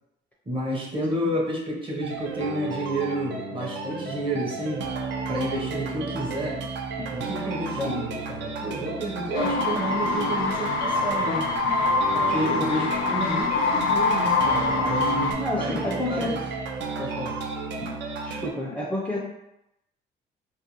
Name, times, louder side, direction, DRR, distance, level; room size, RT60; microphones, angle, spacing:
voice 1, 0.5-4.9 5.3-6.6 7.1-11.5 12.1-15.1 15.6-16.4 17.0-17.4, right 1 dB, 25° right, -2 dB, 0.7 m, -30 dB
sound 1, 2.0-18.5, right 4 dB, 65° right, 0.4 m, -33 dB
sound 2, 9.3-15.3, left 3 dB, 80° left, 0.4 m, -24 dB
voice 2, 15.4-16.4 17.8-18.0 18.2-19.2, left 1 dB, 5° left, -4 dB, 0.4 m, -30 dB
2.5 x 2.1 x 2.9 m, 0.86 s
cardioid pair, 90°, 20 cm